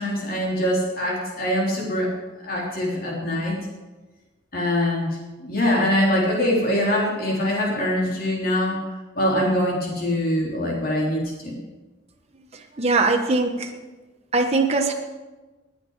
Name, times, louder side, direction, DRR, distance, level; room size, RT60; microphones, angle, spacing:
voice 1, 0.0-2.1 2.4-3.6 4.5-11.6, left 1 dB, 55° left, -3 dB, 3.4 m, -23 dB
voice 2, 12.8-13.7 14.3-14.9, right 3 dB, 35° right, 3 dB, 1.1 m, -21 dB
20.5 x 9.1 x 4.8 m, 1.2 s
head